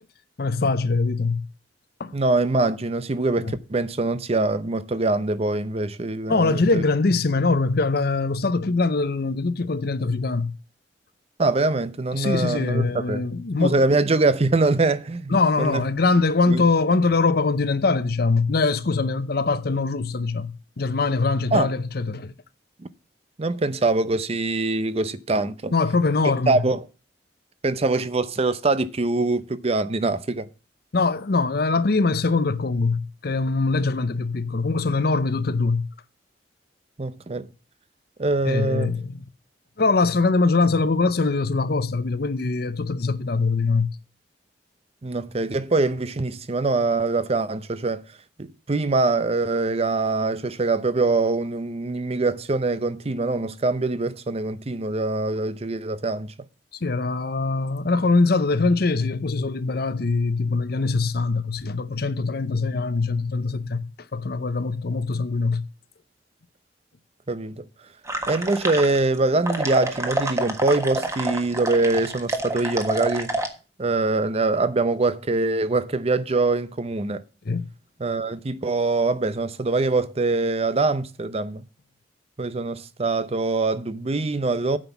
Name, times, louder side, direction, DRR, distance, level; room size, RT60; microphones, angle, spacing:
voice 1, 0.4-1.5 2.0-2.1 3.4-3.6 6.3-10.5 12.1-13.8 15.3-22.3 25.7-26.6 30.9-35.9 38.4-39.2 39.8-43.9 56.8-65.6 77.5-77.7, left 3 dB, 60° left, 0.7 m, -23 dB
voice 2, 2.1-6.8 11.4-13.2 13.6-15.8 16.5-16.6 21.5-21.7 23.4-25.7 26.5-26.8 27.6-30.5 37.0-37.5 38.2-38.9 45.0-48.0 48.4-56.3 67.3-67.6 68.3-73.3 73.8-77.2 78.0-81.6 82.4-84.8, right 3 dB, 35° right, 0.6 m, -23 dB
sound 1, 68.1-69.2 69.5-73.5, right 1 dB, 15° right, 1.4 m, -28 dB
9.1 x 5.9 x 7.1 m
head